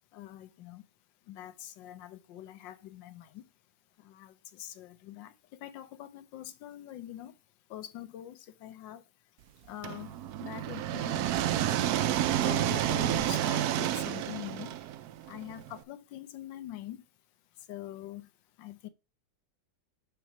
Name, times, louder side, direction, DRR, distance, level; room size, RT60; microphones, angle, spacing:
voice 1, 0.1-0.8 1.3-3.4 4.0-5.3 5.6-7.3 7.7-9.0 9.7-10.1 10.4-11.3 12.4-14.8 15.3-17.0 17.7-18.3 18.6-18.9, left 13 dB, 75° left, 1.5 m, -44 dB
sound 1, 9.8-15.7, right 12 dB, 75° right, 0.9 m, -30 dB
6.9 x 3.1 x 5.9 m
omnidirectional pair, 2.0 m